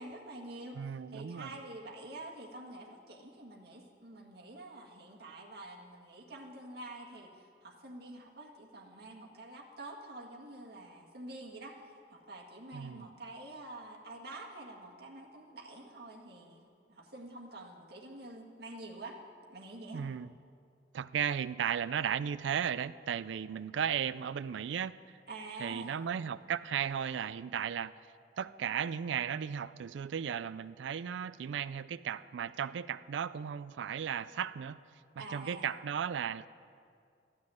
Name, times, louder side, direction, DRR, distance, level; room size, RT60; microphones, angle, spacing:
voice 1, 0.0-19.2 19.5-20.0 25.3-26.0 35.2-35.7, right 2 dB, 55° right, -2 dB, 1.7 m, -47 dB
voice 2, 0.7-1.5 12.7-13.1 19.9-20.3 20.9-24.9 25.6-27.9 28.4-34.8 35.2-36.5, right 8 dB, 75° right, 16 dB, 0.4 m, -35 dB
13.5 x 6.3 x 9.9 m, 2.3 s
head